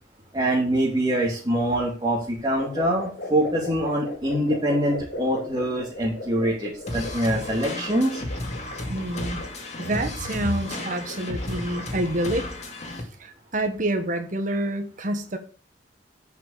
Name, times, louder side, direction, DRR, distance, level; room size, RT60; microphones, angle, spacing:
voice 1, 0.3-8.2, right 1 dB, 25° right, -5 dB, 3.0 m, -24 dB
sound 1, 2.6-12.2, left 1 dB, 50° left, 2.9 m, -38 dB
sound 2, 6.9-13.0, left 1 dB, 35° left, 2.4 m, -33 dB
voice 2, 8.9-9.4 9.8-12.5 13.2-15.4, right 1 dB, 45° right, 5 dB, 1.4 m, -27 dB
10.5 x 6.0 x 6.8 m, 0.39 s
head